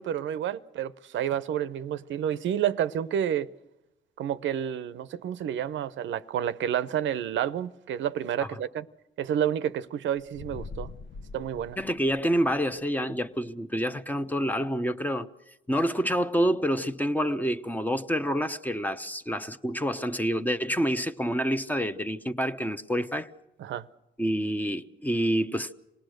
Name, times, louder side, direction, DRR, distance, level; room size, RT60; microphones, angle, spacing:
voice 1, 0.0-3.5 4.2-8.9 9.2-10.9 11.3-11.8 23.6-23.9, right 10 dB, 70° right, 0.7 m, -29 dB
sound 1, 10.2-12.6, left 4 dB, 50° left, 0.7 m, -42 dB
voice 2, 11.8-15.3 15.7-23.3 24.2-25.7, equal, 10° left, 0.8 m, -27 dB
27.0 x 18.5 x 6.5 m
cardioid pair, 90°, 20 cm